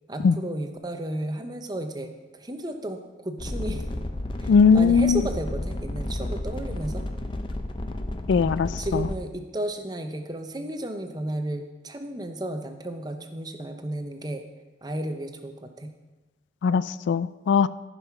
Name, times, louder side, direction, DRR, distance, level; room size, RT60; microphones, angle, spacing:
voice 1, 0.1-2.1 2.4-3.8 4.4-7.0 8.3-14.4 14.8-15.9, right 1 dB, 20° right, 6 dB, 0.8 m, -33 dB
sound 1, 3.4-9.1, left 1 dB, 25° left, 0.6 m, -32 dB
voice 2, 4.5-5.2 8.3-9.1 16.6-17.7, left 5 dB, 75° left, 16 dB, 0.3 m, -20 dB
14.5 x 5.5 x 5.9 m, 1.2 s
head